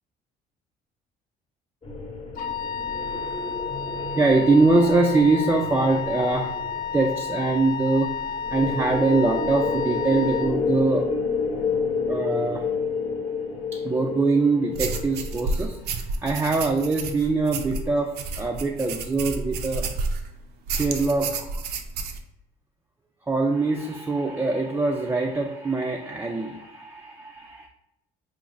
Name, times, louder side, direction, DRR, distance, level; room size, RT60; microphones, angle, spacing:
sound 1, 1.8-15.7, left 4 dB, 35° left, 0.9 m, -30 dB
Wind instrument woodwind instrument, 2.4-10.5, left 6 dB, 60° left, 0.5 m, -31 dB
voice 1, 4.0-11.1 12.1-12.7 13.7-19.9 20.7-21.6 23.3-27.7, right 3 dB, 15° right, 0 dB, 0.4 m, -23 dB
sound 2, 14.7-20.3 20.7-22.2, right 3 dB, 75° right, 0.5 m, -30 dB
4.7 x 2.0 x 3.8 m, 0.84 s
cardioid pair, 110°, 17 cm